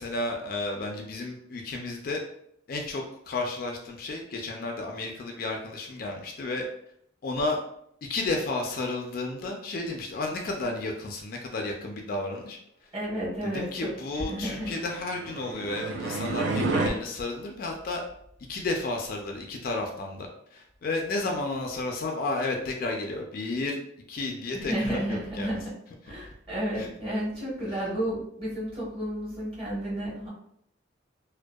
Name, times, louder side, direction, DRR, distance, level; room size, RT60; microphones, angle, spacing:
voice 1, 0.0-2.2 2.7-6.6 7.2-7.6 8.1-12.9 13.4-18.0 18.5-23.8 24.1-25.6 26.1-26.2 26.8-26.9, left 2 dB, 50° left, 2 dB, 0.3 m, -32 dB
voice 2, 12.9-14.7 24.5-25.7 26.0-30.3, equal, 30° right, -7 dB, 1.1 m, -32 dB
sound 1, 15.0-16.9, right 2 dB, 80° right, 0.4 m, -29 dB
2.6 x 2.1 x 2.2 m, 0.70 s
head